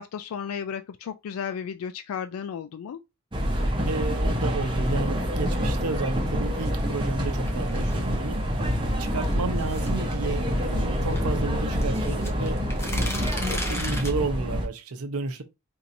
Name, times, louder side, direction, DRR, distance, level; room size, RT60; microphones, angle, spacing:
voice 1, 0.0-3.0, left 7 dB, 75° left, 0.3 m, -34 dB
sound 1, 3.3-14.7, equal, 25° right, 0.8 m, -26 dB
voice 2, 3.9-13.0 13.5-15.4, right 3 dB, 85° right, 0.7 m, -32 dB
sound 2, 6.6-8.2 9.2-11.2 11.8-14.1, left 1 dB, 10° left, 0.7 m, -36 dB
4.4 x 2.7 x 2.6 m
head